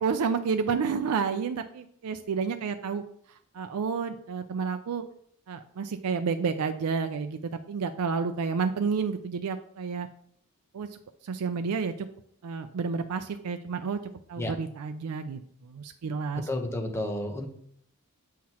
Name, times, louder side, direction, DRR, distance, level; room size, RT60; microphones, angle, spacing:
voice 1, 0.0-3.0 3.3-5.0 5.5-10.1 10.7-10.9 11.2-11.9 12.4-14.0 14.3-16.5, right 5 dB, 80° right, 8 dB, 0.4 m, -30 dB
voice 2, 16.4-17.5, left 1 dB, 10° left, 3 dB, 0.8 m, -31 dB
7.3 x 5.7 x 2.9 m, 0.65 s
head